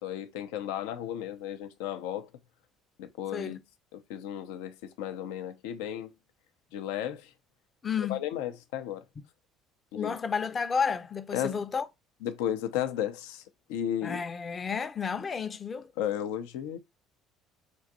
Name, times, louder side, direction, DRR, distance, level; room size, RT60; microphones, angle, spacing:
voice 1, 0.0-2.3 3.0-3.6 3.9-6.1 6.7-7.3 8.1-9.0 9.9-10.2 11.3-11.6 12.2-13.4 13.7-14.2 16.0-16.8, left 10 dB, 80° left, 0.6 m, -34 dB
voice 2, 3.3-3.6 7.8-8.2 9.9-11.9 14.0-15.9, left 6 dB, 35° left, 0.6 m, -31 dB
6.1 x 2.6 x 2.6 m
hypercardioid pair, 70°, 0 cm